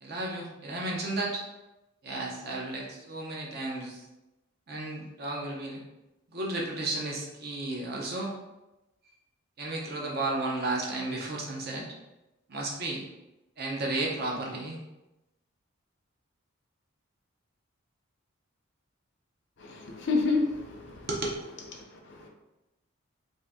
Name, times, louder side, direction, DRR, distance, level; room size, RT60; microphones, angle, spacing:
voice 1, 0.0-1.4 2.0-4.1 4.7-5.8 6.3-8.3 9.6-11.9 12.5-13.0 13.6-14.8 21.1-21.3, right 2 dB, 45° right, -2 dB, 0.6 m, -33 dB
voice 2, 19.6-21.1 21.8-22.3, left 3 dB, 55° left, 2 dB, 0.5 m, -30 dB
2.7 x 2.5 x 3.4 m, 0.98 s
head